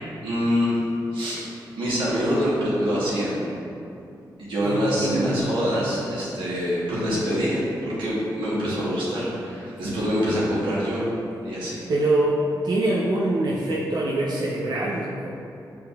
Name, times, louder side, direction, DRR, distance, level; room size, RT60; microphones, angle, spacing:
voice 1, 0.2-0.8 1.1-1.4 1.8-3.4 4.4-11.1 11.4-11.8, equal, 90° right, -8 dB, 1.3 m, -25 dB
voice 2, 4.6-5.5 11.9-15.3, right 2 dB, 60° right, -5 dB, 0.5 m, -24 dB
6.4 x 3.3 x 2.3 m, 2.6 s
cardioid pair, 60°, 8 cm